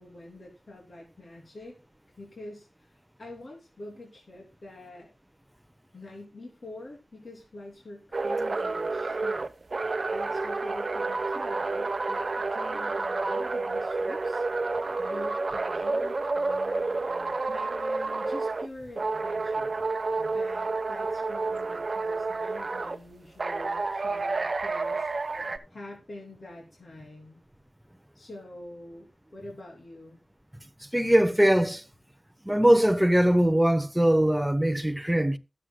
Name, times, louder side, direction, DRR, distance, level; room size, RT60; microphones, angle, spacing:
voice 1, 0.0-1.7 2.2-5.1 5.9-9.4 10.1-14.4 15.0-19.8 20.2-25.1 25.7-27.4 28.1-30.2, left 1 dB, 50° left, 3.1 m, -45 dB
sound 1, 8.1-18.7 19.0-23.0 23.4-25.6, right 3 dB, 45° right, 0.9 m, -30 dB
voice 2, 30.9-31.8 32.5-35.4, right 1 dB, 5° right, 0.9 m, -21 dB
22.5 x 7.7 x 2.3 m
wide cardioid pair, 100°, 0 cm